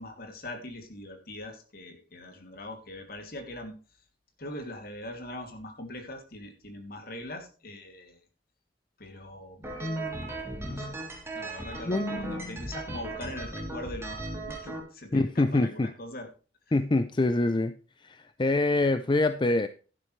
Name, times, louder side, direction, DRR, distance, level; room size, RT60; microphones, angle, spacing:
voice 1, 0.0-3.8 4.4-8.2 9.0-9.9 10.4-11.0 11.3-14.2 14.5-16.3, left 1 dB, 55° left, 5 dB, 2.6 m, -41 dB
sound 1, 9.6-14.8, right 2 dB, 15° right, 3.3 m, -37 dB
voice 2, 9.8-10.3 10.6-11.0 11.9-12.6 15.1-15.9 16.7-17.7 18.0-19.7, left 2 dB, 25° left, 12 dB, 0.5 m, -26 dB
12.0 x 11.0 x 3.2 m, 0.36 s
head